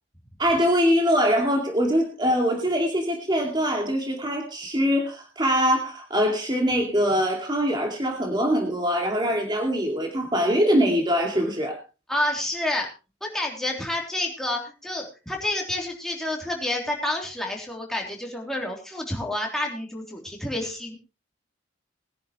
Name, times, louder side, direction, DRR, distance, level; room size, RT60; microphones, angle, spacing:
voice 1, 0.4-11.8, equal, 25° right, 2 dB, 2.3 m, -23 dB
voice 2, 12.1-12.9 13.2-21.0, left 1 dB, ahead, -1 dB, 3.2 m, -29 dB
21.0 x 10.5 x 3.1 m, 0.31 s
head